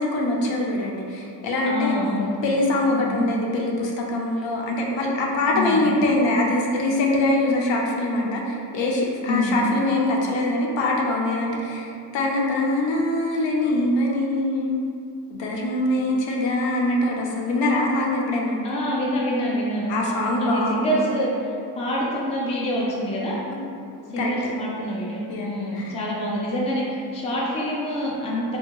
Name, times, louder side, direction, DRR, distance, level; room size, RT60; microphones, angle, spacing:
voice 1, 0.0-2.0 2.4-14.8 15.3-18.6 19.9-21.0 24.0-24.3 25.3-25.9, left 1 dB, 75° left, -2 dB, 0.6 m, -23 dB
voice 2, 1.7-2.3 2.9-3.2 5.5-5.8 9.3-9.6 18.6-23.4 24.1-28.6, equal, 15° left, -5 dB, 0.3 m, -26 dB
3.5 x 2.2 x 2.9 m, 2.5 s
wide cardioid pair, 165°, 44 cm